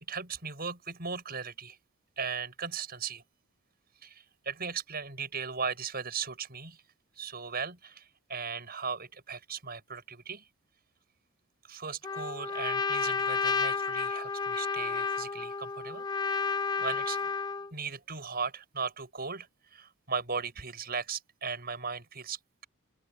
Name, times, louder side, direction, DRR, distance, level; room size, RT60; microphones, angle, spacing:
voice 1, 0.1-1.8 2.2-3.2 4.0-6.8 7.2-10.5 11.6-16.4 16.8-17.3 17.7-22.7, right 5 dB, 45° right, 6.9 m, -37 dB
Trumpet, 12.0-17.7, left 5 dB, 20° left, 0.4 m, -31 dB
head